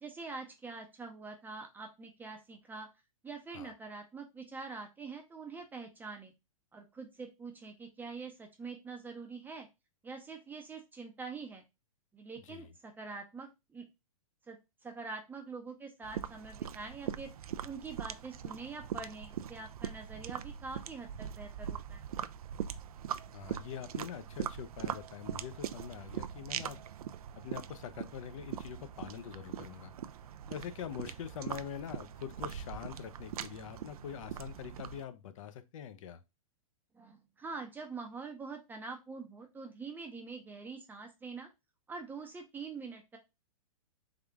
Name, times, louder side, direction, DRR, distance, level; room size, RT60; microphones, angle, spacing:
voice 1, 0.0-2.9 3.2-6.3 6.7-9.7 10.0-11.6 12.1-13.9 14.5-14.6 14.8-17.3 17.6-22.1 36.9-41.5 41.9-43.2, right 4 dB, 10° right, 0.5 m, -45 dB
sound 1, 16.0-35.0, right 9 dB, 85° right, 0.4 m, -42 dB
voice 2, 23.3-26.8 27.4-29.9 30.5-36.2, left 8 dB, 65° left, 0.7 m, -44 dB
3.7 x 3.5 x 3.4 m
hypercardioid pair, 140°, 18 cm